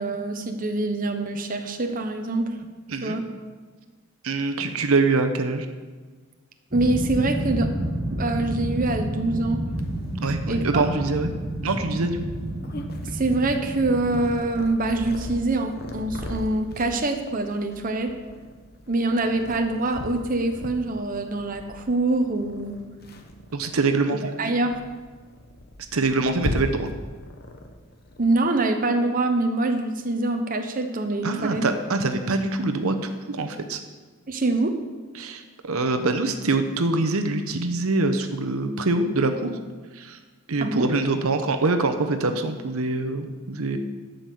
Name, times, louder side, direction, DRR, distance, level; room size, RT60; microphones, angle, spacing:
voice 1, 0.0-2.5 3.0-3.3 6.7-7.7 8.1-9.6 10.5-10.9 13.1-18.1 18.9-22.8 24.2-24.8 28.2-31.6 34.3-34.7 40.6-40.9, right 2 dB, 40° right, 5 dB, 0.9 m, -25 dB
voice 2, 4.2-5.7 10.2-11.3 11.6-12.3 23.5-24.5 25.9-26.9 31.2-33.8 35.2-39.5 39.9-40.2 40.5-43.8, right 3 dB, 70° right, 7 dB, 0.8 m, -24 dB
sound 1, 6.7-14.4, right 1 dB, 20° right, 1.6 m, -30 dB
Purr, 9.7-28.4, left 1 dB, 45° left, 1.0 m, -39 dB
11.5 x 5.4 x 7.7 m, 1.4 s
head